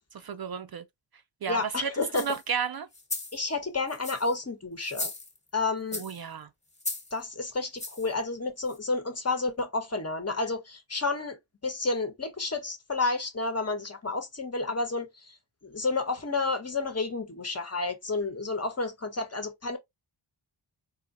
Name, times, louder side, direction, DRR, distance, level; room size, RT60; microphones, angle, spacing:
voice 1, 0.1-0.8 1.4-1.9 2.1-2.9 5.9-6.5, right 7 dB, 50° right, 0.5 m, -33 dB
voice 2, 1.5-2.4 3.3-5.1 5.5-6.0 7.1-11.4 11.6-15.4 15.6-19.8, left 3 dB, 30° left, 1.1 m, -30 dB
sound 1, 2.1-2.4 2.9-3.4 3.9-4.4 4.8-5.5 5.9-6.2 6.8-7.1 7.8-8.1 8.7-8.8, left 2 dB, 15° left, 1.2 m, -36 dB
4.1 x 2.7 x 2.5 m
wide cardioid pair, 80°, 48 cm